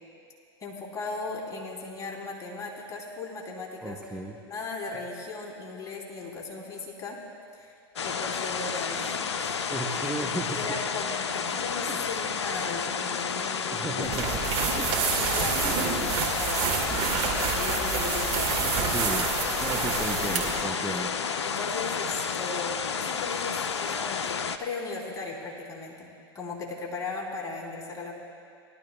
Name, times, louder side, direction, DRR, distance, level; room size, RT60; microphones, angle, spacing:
voice 1, 0.6-4.2 4.5-7.2 7.5-7.8 8.0-9.7 10.5-14.1 15.0-16.8 17.4-18.9 20.3-21.0 21.4-28.1, left 3 dB, 25° left, -3 dB, 2.9 m, -37 dB
voice 2, 3.8-4.4 9.7-10.7 11.9-12.1 12.6-12.7 13.7-14.4 14.8-15.0 15.5-16.1 18.6-19.3 19.6-21.1, right 2 dB, 5° right, -1 dB, 0.8 m, -35 dB
sound 1, 8.0-24.6, left 6 dB, 90° left, 0.5 m, -31 dB
sound 2, 14.0-20.6, right 6 dB, 50° right, 2.5 m, -28 dB
20.0 x 12.0 x 2.2 m, 2.4 s
hypercardioid pair, 95°, 14 cm